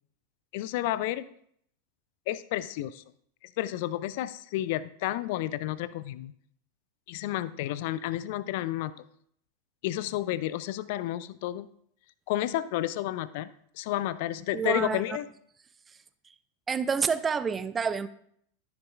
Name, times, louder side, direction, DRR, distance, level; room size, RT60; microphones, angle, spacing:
voice 1, 0.5-1.3 2.3-3.0 3.6-6.3 7.1-8.9 9.8-11.7 12.3-13.5 13.8-15.3, left 14 dB, 50° left, 16 dB, 0.4 m, -31 dB
voice 2, 14.5-15.0 16.7-18.1, right 6 dB, 20° right, 13 dB, 0.5 m, -28 dB
13.0 x 7.3 x 2.4 m, 0.66 s
figure-of-eight pair, 90°, 0 cm